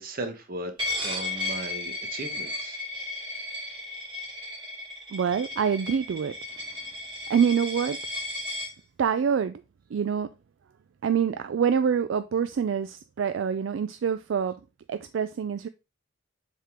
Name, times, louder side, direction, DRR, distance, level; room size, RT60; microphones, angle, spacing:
voice 1, 0.0-2.8, right 1 dB, 45° right, 1.1 m, -37 dB
Coin (dropping), 0.8-8.7, left 2 dB, 25° right, 2.7 m, -34 dB
voice 2, 5.1-6.3 7.3-8.0 9.0-9.6 9.9-10.3 11.0-14.5 14.9-15.7, right 7 dB, 70° right, 0.3 m, -26 dB
7.3 x 3.7 x 3.5 m
head